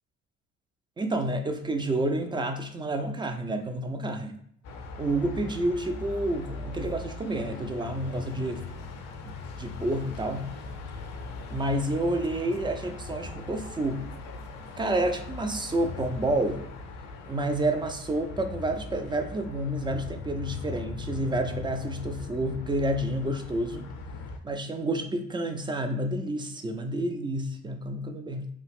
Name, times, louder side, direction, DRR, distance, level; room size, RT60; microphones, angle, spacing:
voice 1, 1.0-4.3 5.0-8.6 9.2-10.5 11.5-14.1 14.8-16.7 17.3-23.9 24.4-28.5, right 1 dB, 15° right, 6 dB, 0.3 m, -29 dB
sound 1, 4.6-24.4, left 3 dB, 45° left, 0.6 m, -40 dB
2.8 x 2.4 x 3.3 m, 0.67 s
hypercardioid pair, 65°, 36 cm